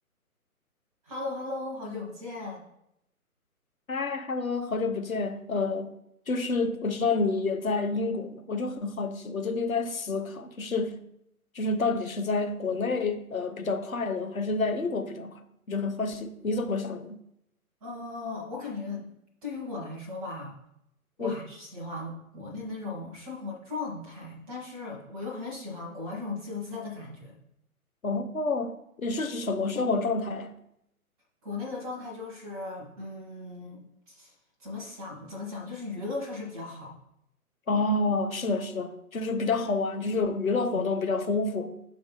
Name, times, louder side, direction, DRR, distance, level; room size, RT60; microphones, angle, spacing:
voice 1, 1.0-2.6 17.8-19.1 19.4-20.5 21.2-27.4 31.4-34.3 34.6-36.9, left 3 dB, ahead, 0.6 m, -37 dB
voice 2, 3.9-6.0 6.3-11.0 11.5-17.2 21.2-21.4 28.0-30.5 37.7-41.8, left 3 dB, 65° left, 0.9 m, -29 dB
6.3 x 3.4 x 5.5 m
figure-of-eight pair, 135°, 45 cm